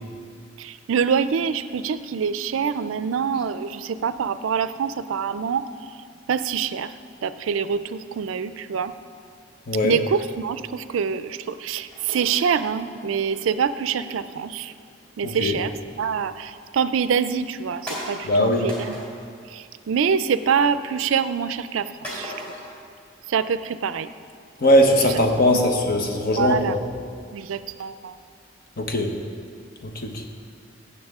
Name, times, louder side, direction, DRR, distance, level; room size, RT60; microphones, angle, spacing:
voice 1, 0.6-5.7 6.3-6.9 7.2-8.9 9.8-14.7 15.2-19.0 19.5-22.3 23.3-24.1 25.5-25.6 26.4-26.8 27.3-28.2, right 6 dB, 90° right, 13 dB, 0.4 m, -25 dB
voice 2, 9.7-10.0 15.2-15.6 18.3-18.6 24.6-26.8 28.8-29.1 29.8-30.3, left 1 dB, 50° left, 3 dB, 1.0 m, -20 dB
sound 1, 11.9-13.4 14.0-15.3 15.7-16.0 16.5-16.6 17.1-17.2 17.9-19.3 19.7-20.1 20.3-21.0 22.0-22.8, equal, 5° left, 2.9 m, -38 dB
16.0 x 6.8 x 3.6 m, 2.2 s
head